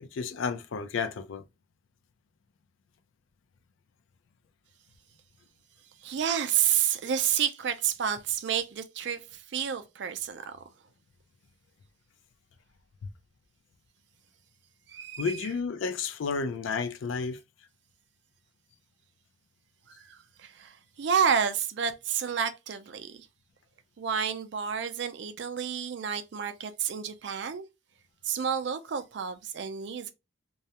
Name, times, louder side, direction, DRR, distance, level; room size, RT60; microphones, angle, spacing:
voice 1, 0.0-1.4 15.2-17.4, left 5 dB, 75° left, 0.4 m, -31 dB
voice 2, 6.0-10.4 14.9-15.5 20.0-23.3 24.0-27.6 28.2-30.1, right 8 dB, 60° right, 0.4 m, -30 dB
2.3 x 2.0 x 2.8 m
head